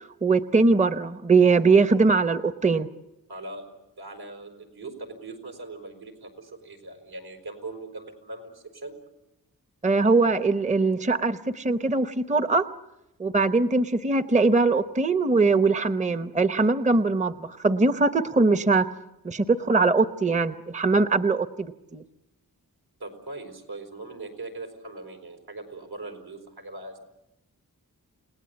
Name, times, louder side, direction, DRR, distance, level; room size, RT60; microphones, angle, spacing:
voice 1, 0.0-2.9 9.8-12.7 13.2-18.8 19.2-21.7 21.9-22.0, right 3 dB, 20° right, 11 dB, 0.8 m, -21 dB
voice 2, 3.3-3.7 4.0-9.0 23.0-27.0, right 2 dB, 80° right, 5 dB, 5.1 m, -40 dB
29.5 x 18.5 x 8.4 m, 0.94 s
wide cardioid pair, 80°, 37 cm